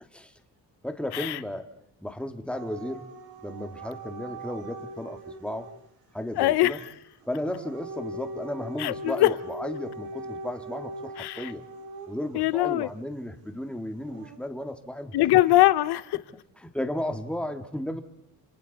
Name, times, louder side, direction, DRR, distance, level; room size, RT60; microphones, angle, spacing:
voice 1, 0.8-1.7 2.0-3.0 3.4-5.7 6.1-6.8 7.3-11.6 12.1-15.1 16.6-18.0, left 1 dB, 5° left, 5 dB, 2.0 m, -34 dB
Dog / Siren, 2.5-5.8 7.2-12.4 14.0-14.4, right 1 dB, 65° right, 3.7 m, -40 dB
voice 2, 6.4-6.8 8.8-9.3 11.2-11.5 12.3-12.9 15.1-16.2, left 16 dB, 85° left, 16 dB, 0.8 m, -22 dB
28.5 x 28.0 x 4.1 m, 0.80 s
cardioid pair, 90°, 39 cm